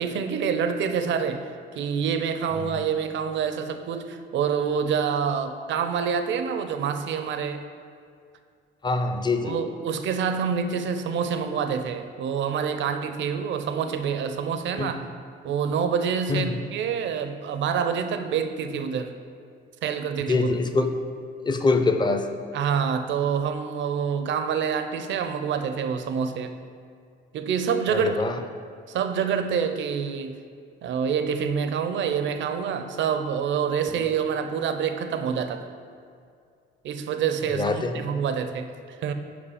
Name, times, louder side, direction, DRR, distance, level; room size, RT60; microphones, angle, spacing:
voice 1, 0.0-1.4 1.7-7.6 9.4-15.0 15.4-19.1 19.8-20.5 22.5-26.5 27.3-28.2 28.9-30.4 30.8-35.6 36.8-39.1, right 7 dB, 70° right, 8 dB, 0.5 m, -27 dB
voice 2, 8.8-9.6 14.8-15.0 16.3-16.6 20.3-20.9 21.4-22.3 27.9-28.4 37.5-38.0, left 3 dB, 20° left, 6 dB, 0.5 m, -24 dB
5.1 x 5.0 x 4.9 m, 2.3 s
cardioid pair, 90°, 20 cm